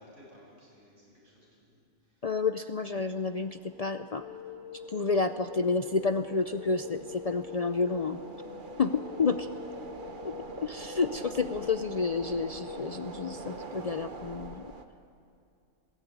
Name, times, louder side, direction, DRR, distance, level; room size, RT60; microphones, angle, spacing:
voice 1, 0.0-2.3, left 1 dB, 85° right, -5 dB, 8.5 m, -57 dB
voice 2, 2.2-4.3 4.7-8.2 8.8-9.5 10.2-14.7, left 4 dB, 45° left, 9 dB, 0.5 m, -30 dB
sound 1, 3.3-14.8, right 3 dB, 45° right, 1.2 m, -45 dB
sound 2, 4.2-13.8, left 6 dB, 90° left, 1.6 m, -45 dB
21.0 x 16.5 x 9.3 m, 2.5 s
omnidirectional pair, 1.2 m